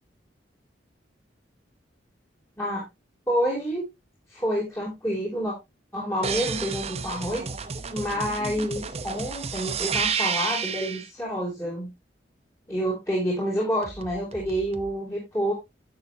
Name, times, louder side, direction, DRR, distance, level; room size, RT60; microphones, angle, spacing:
voice 1, 3.3-3.8 4.3-5.5 5.9-7.4 7.9-11.9 12.7-15.5, equal, 15° left, -5 dB, 3.1 m, -28 dB
sound 1, 6.2-11.1 13.8-14.9, right 6 dB, 35° right, 0.9 m, -31 dB
10.5 x 7.9 x 2.8 m, 0.22 s
head